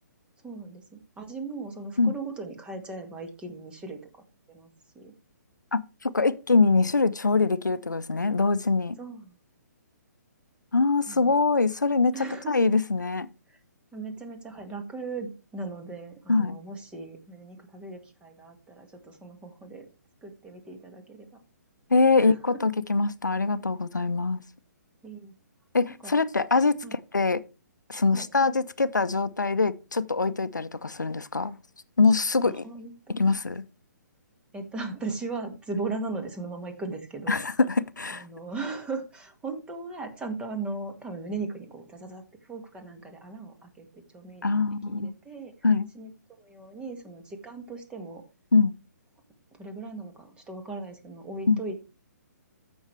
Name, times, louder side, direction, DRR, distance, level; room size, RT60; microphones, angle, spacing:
voice 1, 0.4-4.7 5.0-5.1 9.0-9.3 11.1-11.4 12.1-12.5 13.5-13.6 13.9-19.9 20.2-21.3 22.2-22.6 25.0-25.3 26.0-26.1 26.8-27.0 28.1-28.3 32.4-33.4 34.5-37.4 38.1-44.5 44.9-45.5 45.9-46.1 46.4-48.2 49.6-51.8, right 3 dB, 10° right, 1.9 m, -38 dB
voice 2, 5.7-9.0 10.7-13.3 16.3-16.6 21.9-24.4 25.7-27.4 27.9-31.6 32.0-32.7 33.1-33.6 35.7-35.8 37.3-38.3 44.4-45.1 45.6-45.9 48.5-48.7 51.5-51.6, left 4 dB, 80° left, 0.7 m, -24 dB
14.5 x 6.3 x 3.3 m
figure-of-eight pair, 130°, 10 cm